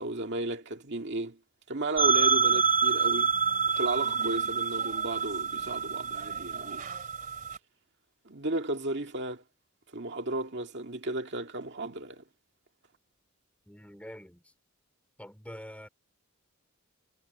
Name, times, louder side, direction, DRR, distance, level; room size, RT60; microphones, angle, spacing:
voice 1, 0.0-1.4 1.7-3.3 3.8-6.8 8.3-9.4 9.9-12.2, right 2 dB, 55° right, 2.1 m, -34 dB
sound 1, 2.0-7.6, right 6 dB, 40° right, 2.8 m, -27 dB
voice 2, 13.7-14.5 15.2-15.9, equal, 5° left, 4.8 m, -45 dB
head